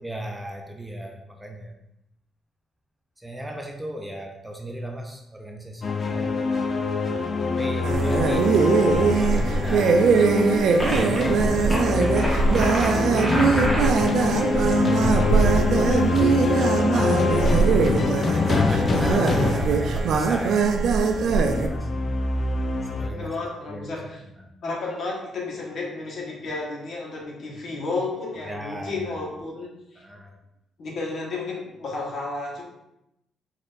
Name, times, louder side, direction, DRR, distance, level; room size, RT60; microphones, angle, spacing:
voice 1, 0.0-1.7 3.2-6.4 7.5-8.6 8.9-10.1 10.8-15.2 16.0-17.3 18.3-20.6 21.4-21.9 22.9-23.3 23.7-23.9 24.4-24.5 28.5-29.2 30.0-30.4, right 1 dB, 10° right, 2 dB, 0.6 m, -36 dB
sound 1, 5.8-23.1, left 3 dB, 40° left, 0.4 m, -25 dB
sound 2, 7.8-21.7, right 5 dB, 70° right, 0.5 m, -21 dB
sound 3, 10.8-11.2 11.6-14.1, equal, 15° left, 1.5 m, -28 dB
voice 2, 16.4-17.4 23.1-24.2 24.6-30.0 30.8-32.6, left 3 dB, 60° left, -2 dB, 1.4 m, -32 dB
4.8 x 4.1 x 2.6 m, 0.85 s
cardioid pair, 90°, 0 cm